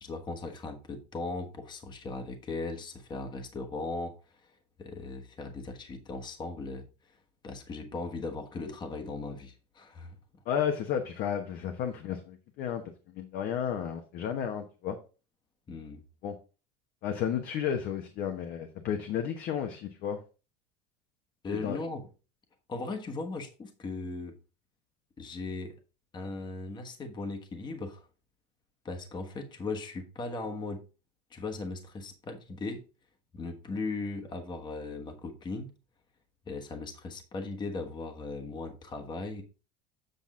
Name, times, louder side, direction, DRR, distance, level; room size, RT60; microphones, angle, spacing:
voice 1, 0.0-4.1 4.8-6.9 7.4-10.2 15.7-16.0 21.4-22.0 22.7-24.3 25.2-25.7 26.1-28.1 28.8-30.8 31.3-32.8 33.3-35.7 36.5-39.4, left 3 dB, 25° left, 5 dB, 1.3 m, -38 dB
voice 2, 10.4-12.8 13.1-15.0 16.2-16.3 17.0-20.2 21.5-21.8, left 8 dB, 55° left, 6 dB, 1.1 m, -32 dB
8.1 x 6.0 x 3.7 m, 0.33 s
supercardioid pair, 130°, 19 cm